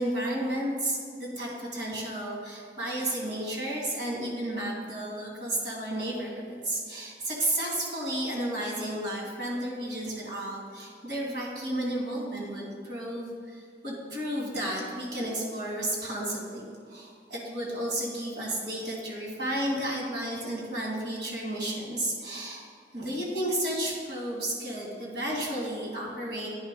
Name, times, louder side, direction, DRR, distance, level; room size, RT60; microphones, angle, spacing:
voice 1, 0.0-22.6 22.9-26.5, right 1 dB, 85° right, -3 dB, 2.0 m, -32 dB
10.0 x 3.4 x 5.2 m, 2.1 s
head